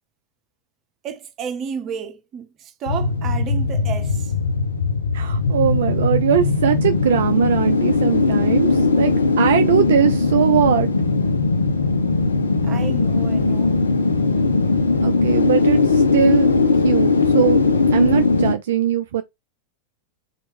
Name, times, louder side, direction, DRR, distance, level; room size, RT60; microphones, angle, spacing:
voice 1, 1.0-4.3 12.6-13.8, right 7 dB, 35° right, 0.8 m, -32 dB
sound 1, 2.9-18.5, left 3 dB, 75° left, 0.6 m, -19 dB
voice 2, 5.1-9.1 9.4-10.9 15.0-16.5 16.8-17.6 17.9-19.2, right 9 dB, 60° right, 0.4 m, -20 dB
4.0 x 3.0 x 3.2 m
figure-of-eight pair, 90°, 0 cm